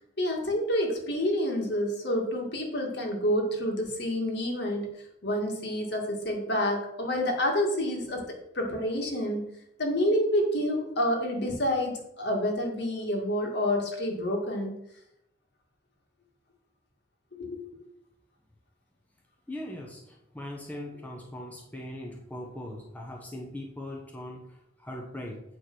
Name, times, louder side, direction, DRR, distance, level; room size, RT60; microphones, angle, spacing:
voice 1, 0.2-4.9 5.2-9.5 9.8-14.7 17.3-17.6, equal, 60° left, 1 dB, 2.1 m, -28 dB
voice 2, 19.5-25.4, left 1 dB, 10° left, -1 dB, 1.0 m, -40 dB
8.3 x 4.8 x 6.1 m, 0.81 s
head